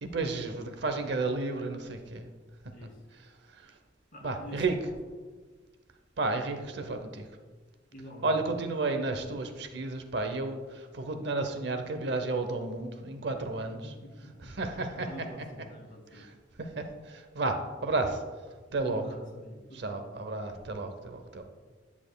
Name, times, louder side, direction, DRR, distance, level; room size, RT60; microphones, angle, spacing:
voice 1, 0.0-2.3 3.1-3.7 4.2-4.7 6.2-7.3 8.2-13.9 14.4-15.3 16.1-16.3 16.6-18.2 18.7-19.0 19.7-21.4, right 3 dB, 65° right, 7 dB, 0.7 m, -32 dB
voice 2, 4.1-4.6 7.9-8.5 13.8-14.5 15.1-16.3 18.7-20.1, equal, 50° left, -2 dB, 2.1 m, -46 dB
10.0 x 7.1 x 2.2 m, 1.4 s
head